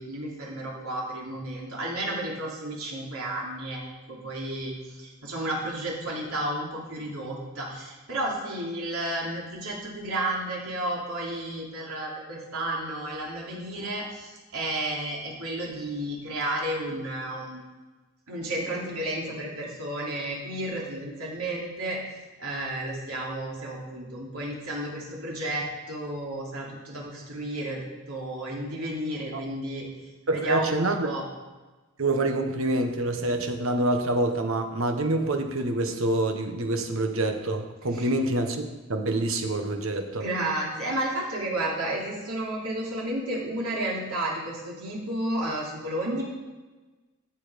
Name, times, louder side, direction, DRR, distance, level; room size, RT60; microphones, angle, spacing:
voice 1, 0.0-17.7 18.3-22.0 22.4-27.8 28.1-29.9 30.3-31.2 37.9-38.1 40.1-46.2, right 1 dB, 85° right, -3 dB, 3.3 m, -32 dB
voice 2, 30.3-31.1 32.0-40.2, right 2 dB, 70° right, 5 dB, 1.2 m, -26 dB
13.5 x 7.4 x 5.2 m, 1.2 s
head